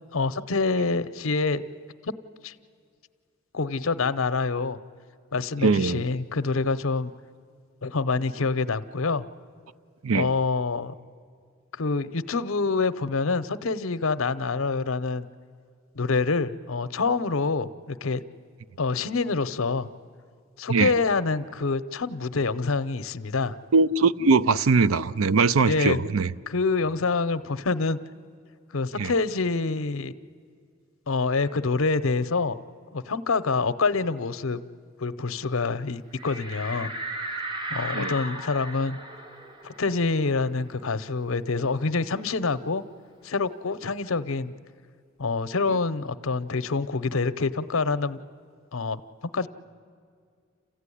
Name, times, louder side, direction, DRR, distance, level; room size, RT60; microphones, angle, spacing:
voice 1, 0.1-1.6 2.0-2.1 2.4-2.5 3.5-4.8 5.3-7.1 7.8-9.3 10.1-10.9 11.7-15.3 15.9-18.2 18.8-19.9 20.6-23.6 25.6-26.1 26.5-28.0 28.7-30.2 31.1-32.6 32.9-34.6 35.0-36.9 37.7-39.0 39.6-42.8 43.2-44.5 45.2-48.2 48.7-49.0 49.3-49.5, left 4 dB, 75° left, 0.7 m, -26 dB
voice 2, 5.6-6.0 10.0-10.3 20.7-20.9 23.7-26.3 29.0-29.1 37.9-38.1, right 4 dB, 80° right, 0.5 m, -21 dB
sound 1, 36.2-41.4 41.7-41.8 42.1-43.8, right 1 dB, 25° right, 1.0 m, -37 dB
28.0 x 15.5 x 9.9 m
head